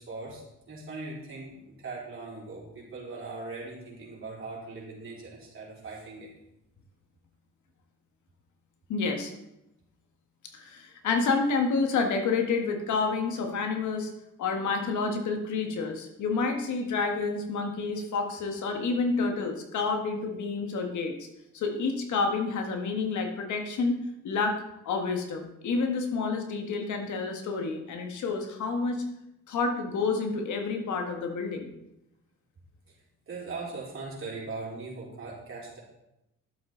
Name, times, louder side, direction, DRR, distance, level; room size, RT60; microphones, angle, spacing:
voice 1, 0.0-6.3 32.9-33.0 33.3-35.8, right 3 dB, 45° right, -5 dB, 3.9 m, -40 dB
voice 2, 8.9-9.3 10.5-14.1 14.4-21.3 21.5-24.0 24.2-24.6 24.8-29.0 29.5-31.7, left 4 dB, 75° left, 4 dB, 1.6 m, -29 dB
11.5 x 7.7 x 3.9 m, 0.88 s
cardioid pair, 90°, 30 cm